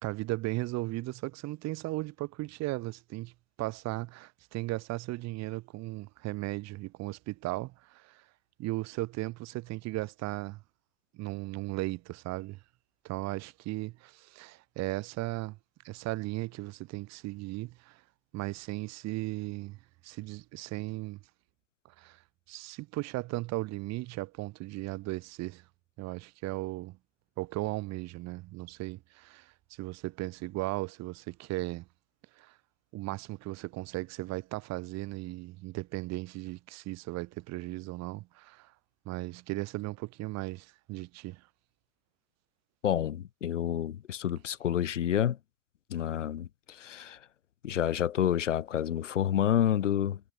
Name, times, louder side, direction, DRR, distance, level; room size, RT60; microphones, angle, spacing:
voice 1, 0.0-3.3 3.6-8.2 8.6-10.6 11.1-12.6 13.0-15.6 15.8-18.0 18.3-21.2 22.0-22.2 22.5-25.6 26.0-27.0 27.4-31.9 32.4-32.6 32.9-38.7 39.0-41.5, right 19 dB, 45° right, 2.6 m, -36 dB
voice 2, 42.8-45.4 45.9-47.2 47.6-50.2, left 10 dB, 75° left, 2.8 m, -29 dB
figure-of-eight pair, 80°, 38 cm